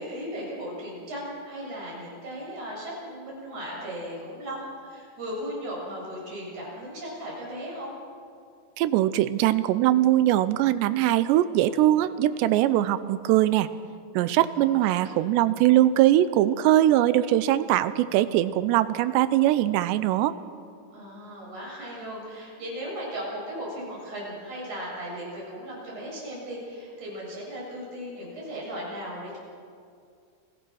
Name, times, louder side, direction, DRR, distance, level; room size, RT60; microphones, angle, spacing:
voice 1, 0.0-7.9 14.8-15.2 20.9-29.4, equal, 40° right, -4 dB, 8.7 m, -37 dB
voice 2, 8.8-13.7 14.2-20.4, right 13 dB, 80° right, 13 dB, 2.9 m, -21 dB
28.5 x 18.0 x 6.3 m, 2.3 s
omnidirectional pair, 5.1 m